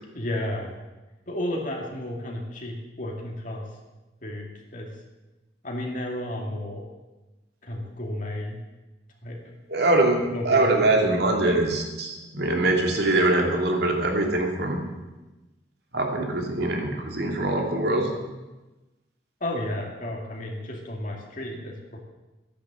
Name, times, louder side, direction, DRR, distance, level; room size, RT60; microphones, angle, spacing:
voice 1, 0.1-0.7 1.3-3.7 4.2-4.9 5.6-6.8 7.6-8.6 9.2-9.4 10.3-11.1 19.4-22.0, left 1 dB, 50° left, 0 dB, 2.4 m, -32 dB
voice 2, 9.7-10.2 10.4-14.8 15.9-18.1, right 2 dB, 65° right, 2 dB, 2.8 m, -23 dB
13.5 x 10.5 x 7.8 m, 1.1 s
head